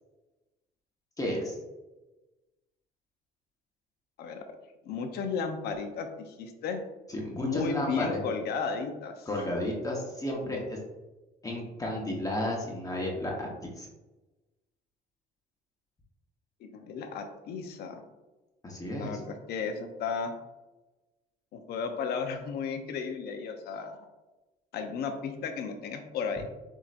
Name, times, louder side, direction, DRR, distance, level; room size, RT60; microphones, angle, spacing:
voice 1, 1.2-1.6 7.1-8.2 9.3-10.8 11.4-13.9 18.6-19.2, left 1 dB, 20° left, -1 dB, 1.1 m, -32 dB
voice 2, 4.2-4.6 4.9-6.8 7.4-9.3 16.6-18.0 18.9-20.3 21.5-24.0 24.7-26.4, left 5 dB, 70° left, 6 dB, 0.7 m, -34 dB
7.1 x 2.9 x 2.5 m, 1.1 s
cardioid pair, 110°, 17 cm